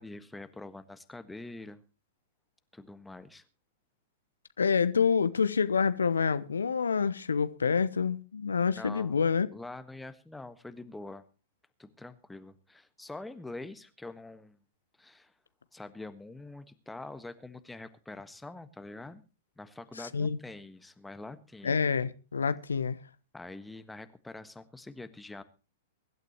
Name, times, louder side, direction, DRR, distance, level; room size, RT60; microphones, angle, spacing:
voice 1, 0.0-1.8 2.7-3.4 8.8-9.2 9.5-11.2 11.8-14.6 15.0-15.3 15.7-19.2 19.6-21.8 23.3-25.4, left 2 dB, 5° left, 1.4 m, -45 dB
voice 2, 4.6-9.5 20.1-20.4 21.6-23.0, left 6 dB, 70° left, 0.9 m, -27 dB
23.5 x 12.0 x 3.0 m
figure-of-eight pair, 105°, 0 cm